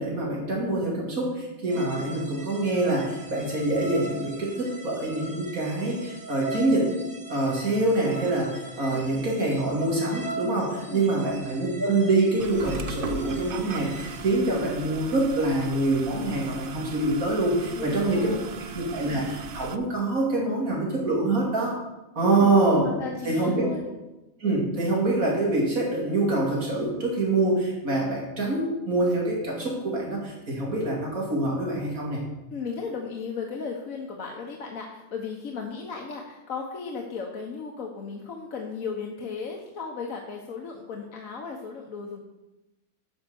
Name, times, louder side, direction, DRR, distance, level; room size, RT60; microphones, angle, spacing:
voice 1, 0.0-6.9 7.3-18.3 18.7-21.7 22.1-22.8 23.2-23.7 24.4-32.2, right 2 dB, 85° right, -3 dB, 3.1 m, -25 dB
sound 1, 1.7-14.2, right 2 dB, 30° right, 1.7 m, -41 dB
voice 2, 8.8-9.1 10.8-11.1 17.7-18.7 22.2-24.0 32.5-42.2, left 5 dB, 75° left, 0 dB, 1.5 m, -36 dB
sound 2, 12.4-19.8, right 4 dB, 55° right, 0.6 m, -38 dB
11.0 x 5.8 x 6.9 m, 1.0 s
omnidirectional pair, 1.4 m